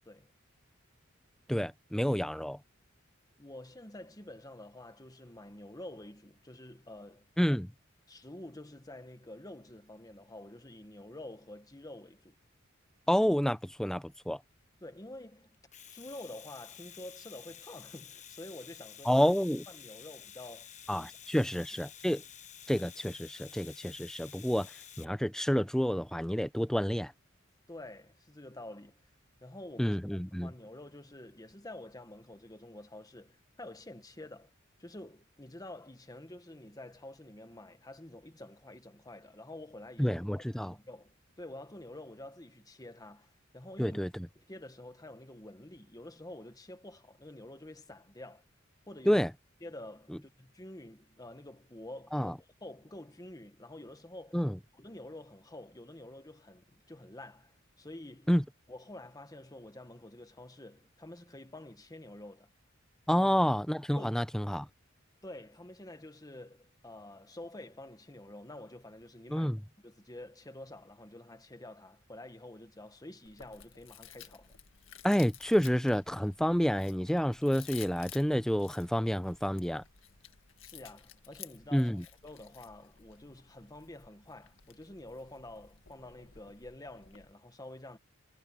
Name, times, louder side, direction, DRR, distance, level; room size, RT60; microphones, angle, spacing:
voice 1, 1.5-2.6 7.4-7.7 13.1-14.4 19.0-19.6 20.9-22.2 22.7-24.7 25.0-27.1 29.8-30.5 40.0-40.7 43.8-44.3 49.1-49.3 52.1-52.3 54.3-54.6 58.3-58.4 63.1-64.7 69.3-69.6 75.0-79.8 81.7-82.0, equal, 5° left, 0.7 m, -29 dB
voice 2, 3.4-7.2 8.1-12.4 14.8-15.5 15.9-19.2 19.7-20.7 21.0-21.1 21.4-21.5 27.7-29.0 29.4-30.0 30.4-34.5 34.8-40.2 40.6-44.0 44.4-48.4 48.9-49.2 49.6-54.4 54.7-58.3 58.7-62.5 63.1-63.3 64.0-64.2 65.2-69.5 69.8-74.5 80.6-88.0, left 1 dB, 20° left, 1.6 m, -48 dB
Domestic sounds home sounds, 15.5-25.0, left 9 dB, 35° left, 1.1 m, -51 dB
Chewing mastication, 73.3-87.3, left 10 dB, 70° left, 1.9 m, -54 dB
head